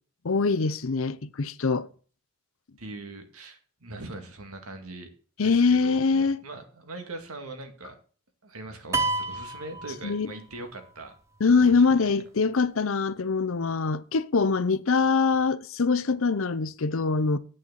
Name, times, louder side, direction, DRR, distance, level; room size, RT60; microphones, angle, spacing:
voice 1, 0.2-1.9 5.4-6.4 10.0-10.3 11.4-17.4, left 4 dB, 70° left, 0.7 m, -23 dB
voice 2, 2.8-5.1 5.4-8.0 8.4-11.1 11.6-11.7 12.0-12.1, right 2 dB, 85° right, 2.2 m, -41 dB
sound 1, 8.9-10.6, right 2 dB, 15° right, 0.7 m, -29 dB
9.1 x 6.4 x 7.4 m
head